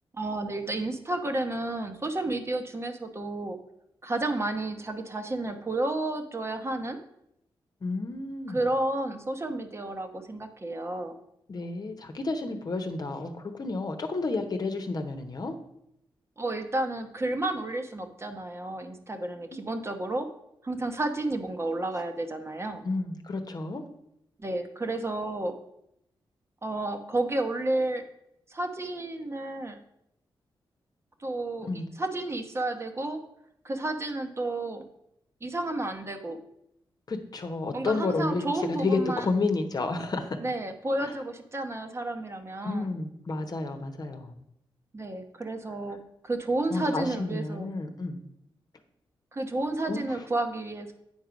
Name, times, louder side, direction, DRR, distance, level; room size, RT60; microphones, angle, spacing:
voice 1, 0.1-3.6 4.0-7.0 8.5-11.1 16.4-20.3 20.6-22.8 24.4-25.6 26.6-28.0 28.5-29.8 31.2-33.2 33.6-34.8 35.4-36.4 37.7-39.3 40.4-42.9 44.9-47.7 49.3-50.9, right 2 dB, 30° right, 6 dB, 1.0 m, -31 dB
voice 2, 7.8-8.6 11.5-15.5 19.5-19.6 22.8-23.8 31.6-31.9 37.1-40.4 41.0-41.1 42.6-44.3 46.7-48.2 49.9-50.0, left 3 dB, 45° left, 6 dB, 1.0 m, -31 dB
9.0 x 4.6 x 5.1 m, 0.78 s
cardioid pair, 75°, 9 cm